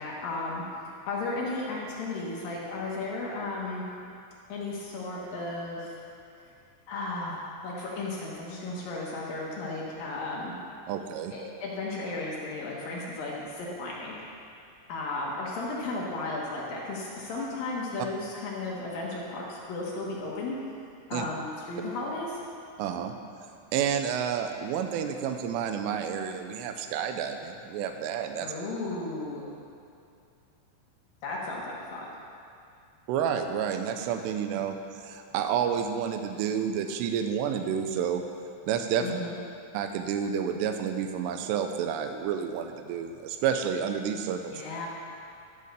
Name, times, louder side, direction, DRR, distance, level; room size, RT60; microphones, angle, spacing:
voice 1, 0.0-3.9 4.5-6.0 6.4-6.5 6.9-10.5 11.3-14.3 14.9-20.6 21.1-22.4 28.4-29.4 31.2-32.1 39.0-39.4 44.5-44.9, left 2 dB, 65° left, -4 dB, 2.4 m, -34 dB
voice 2, 10.9-11.3 21.1-21.3 22.8-23.1 23.7-28.5 33.1-38.2 38.7-39.1 39.7-44.5, right 8 dB, 85° right, 6 dB, 2.6 m, -30 dB
12.5 x 5.4 x 6.7 m, 2.5 s
omnidirectional pair, 5.3 m